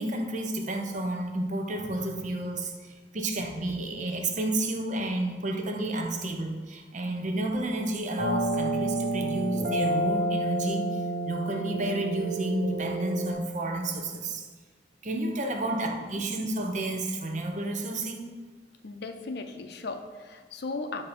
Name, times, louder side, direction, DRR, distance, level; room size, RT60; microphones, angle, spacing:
voice 1, 0.0-14.4 15.0-18.3, right 1 dB, 45° right, 3 dB, 0.6 m, -31 dB
sound 1, 8.2-13.3, right 1 dB, 85° right, 1.3 m, -29 dB
voice 2, 18.8-21.0, left 3 dB, 65° left, 7 dB, 0.5 m, -36 dB
6.8 x 2.8 x 5.1 m, 1.4 s
head